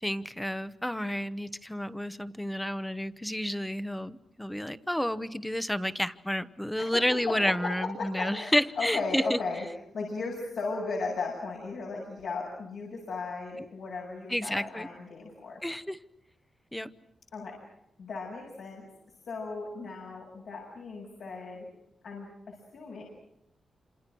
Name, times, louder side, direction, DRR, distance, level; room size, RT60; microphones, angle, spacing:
voice 1, 0.0-9.4 14.3-14.9 15.6-16.0 16.7-16.9, equal, 5° left, 14 dB, 0.9 m, -30 dB
voice 2, 6.8-9.6 9.9-15.6 17.3-17.6 18.0-18.9 19.3-21.7 22.0-23.0, left 3 dB, 75° left, -2 dB, 7.7 m, -36 dB
28.5 x 27.5 x 6.2 m, 0.80 s
wide cardioid pair, 150°, 0 cm